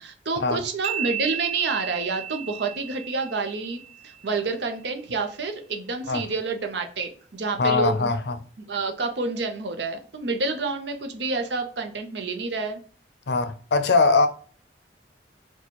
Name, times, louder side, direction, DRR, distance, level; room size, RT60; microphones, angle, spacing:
voice 1, 0.0-8.1 8.7-12.8, right 3 dB, 75° right, 0.7 m, -29 dB
sound 1, 0.8-4.4, right 10 dB, 35° right, 0.3 m, -34 dB
voice 2, 7.6-8.4 13.3-14.3, left 3 dB, 70° left, 0.5 m, -21 dB
4.2 x 2.3 x 3.0 m
head